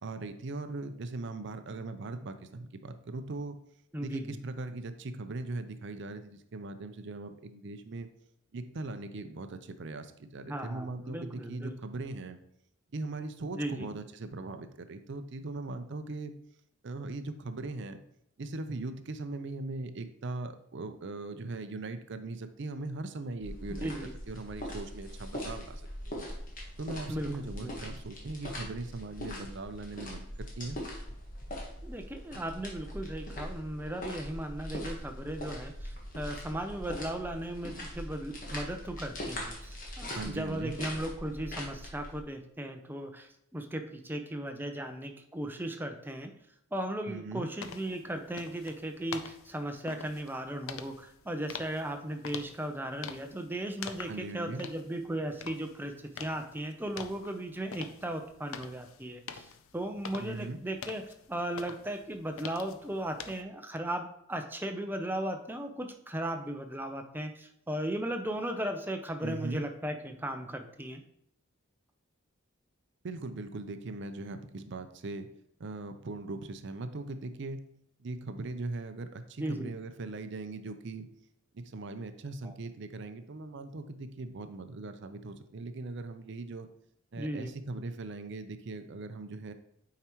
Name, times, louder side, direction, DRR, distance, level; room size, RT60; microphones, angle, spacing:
voice 1, 0.0-3.6 4.0-8.1 8.5-12.4 12.9-16.3 16.8-18.0 18.4-23.9 24.3-26.1 26.8-30.8 40.2-40.8 47.1-47.5 54.1-54.6 60.2-60.6 69.2-69.6 73.0-75.3 75.6-77.6 78.0-81.1 81.5-86.7 87.1-89.5, right 2 dB, 60° right, 9 dB, 0.5 m, -39 dB
voice 2, 3.9-4.4 10.5-11.7 13.5-13.9 23.8-24.1 27.1-27.9 31.8-46.3 46.7-55.9 56.2-71.0 79.4-79.7 82.4-82.5 87.1-87.5, right 1 dB, 10° right, 5 dB, 0.6 m, -37 dB
sound 1, 23.4-42.2, left 1 dB, 40° left, 1.4 m, -41 dB
sound 2, 47.6-63.4, left 6 dB, 80° left, 0.5 m, -46 dB
8.8 x 4.8 x 3.0 m, 0.75 s
head